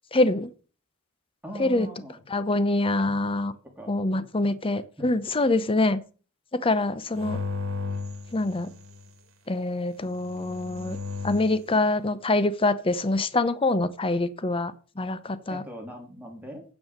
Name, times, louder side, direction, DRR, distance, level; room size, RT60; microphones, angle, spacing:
voice 1, 0.1-0.5 1.5-1.9 2.3-3.5 3.9-6.0 6.5-7.4 8.3-8.7 9.5-11.0 11.2-15.6, left 2 dB, 25° left, 0.7 m, -25 dB
voice 2, 1.4-2.2 3.8-4.5 15.5-16.6, equal, 10° right, 2.8 m, -41 dB
sound 1, 7.1-9.1 10.1-11.6, left 4 dB, 85° right, 1.8 m, -35 dB
9.2 x 5.5 x 6.5 m
head